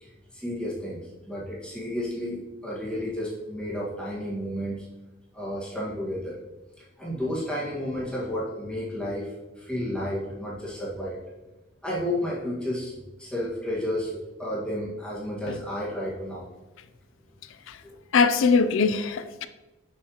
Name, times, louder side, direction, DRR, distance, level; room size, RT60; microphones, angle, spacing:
voice 1, 0.0-4.9 5.3-6.4 6.8-11.2 11.8-12.9 13.2-16.5 17.8-17.9, equal, 5° left, 1.7 m, -32 dB
voice 2, 18.1-19.5, left 5 dB, 80° left, 0.4 m, -22 dB
6.5 x 5.6 x 2.9 m
head